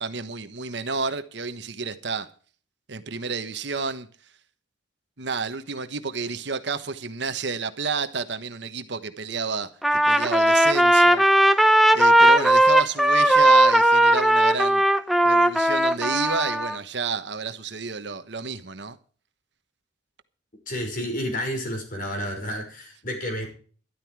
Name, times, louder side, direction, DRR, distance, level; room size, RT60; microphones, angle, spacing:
voice 1, 0.0-2.3 2.9-4.1 5.2-11.2 11.5-14.8 15.2-19.0, right 4 dB, 60° right, 1.2 m, -30 dB
Trumpet, 9.8-16.8, right 1 dB, ahead, 0.7 m, -18 dB
voice 2, 20.7-23.5, equal, 45° left, 5.4 m, -30 dB
13.0 x 12.0 x 4.8 m
head